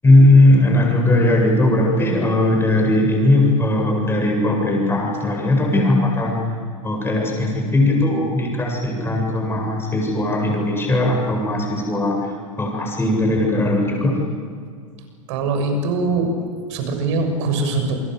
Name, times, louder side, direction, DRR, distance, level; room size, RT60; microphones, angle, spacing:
voice 1, 0.0-6.4 6.8-14.1, left 1 dB, 15° left, 0 dB, 7.8 m, -18 dB
voice 2, 15.3-16.3 16.7-18.0, right 3 dB, 55° right, 5 dB, 6.8 m, -22 dB
28.5 x 22.5 x 8.2 m, 2.1 s
hypercardioid pair, 100°, 18 cm